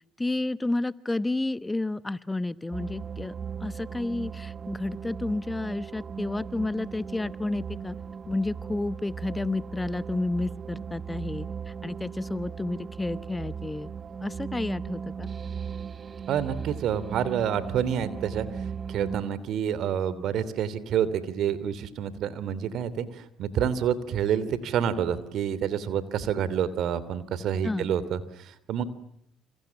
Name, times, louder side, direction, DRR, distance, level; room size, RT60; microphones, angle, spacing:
voice 1, 0.2-3.3 3.6-8.0 8.3-11.5 11.8-13.9 14.2-15.3 27.6-27.9, left 2 dB, 15° left, 16 dB, 1.1 m, -31 dB
sound 1, 2.7-19.2, right 6 dB, 40° right, 1.3 m, -37 dB
voice 2, 16.3-18.5 18.9-28.2 28.7-28.8, right 9 dB, 65° right, 17 dB, 3.1 m, -28 dB
29.0 x 28.5 x 7.2 m, 0.76 s
hypercardioid pair, 65°, 0 cm